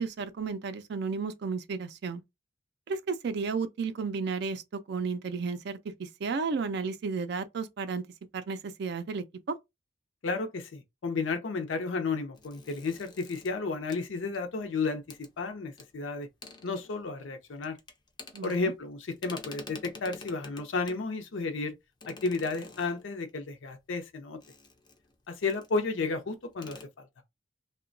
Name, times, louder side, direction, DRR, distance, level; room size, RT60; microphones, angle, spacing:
voice 1, 0.0-2.2 2.9-8.0 8.3-9.6 18.3-18.7, right 4 dB, 60° right, 0.4 m, -33 dB
voice 2, 10.2-16.3 16.6-17.8 18.4-21.7 22.1-24.4 25.3-27.1, left 4 dB, 70° left, 0.5 m, -32 dB
sound 1, 12.4-14.7 15.1-15.3 15.8-15.9 16.2-17.2 17.5-18.9 19.2-21.1 22.0-23.3 24.4-25.1 25.5-25.8 26.1-26.2 26.5-26.8, left 3 dB, 25° left, 0.4 m, -48 dB
2.8 x 2.1 x 2.5 m
head